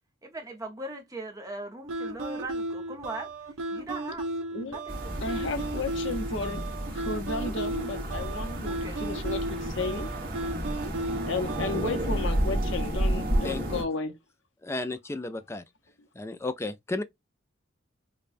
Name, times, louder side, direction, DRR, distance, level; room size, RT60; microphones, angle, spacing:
voice 1, 0.2-3.3 3.7-4.3 4.6-5.2 8.6-9.0, right 2 dB, 15° right, 0.7 m, -39 dB
sound 1, 1.9-12.0, right 2 dB, 85° right, 0.7 m, -35 dB
sound 2, 4.9-13.8, right 1 dB, 45° right, 1.1 m, -31 dB
voice 2, 5.2-6.6 6.9-10.1 11.3-14.1, left 3 dB, 60° left, 0.7 m, -33 dB
voice 3, 13.4-13.9 14.6-15.6 16.2-17.0, left 2 dB, 15° left, 0.3 m, -33 dB
5.0 x 2.2 x 2.5 m
head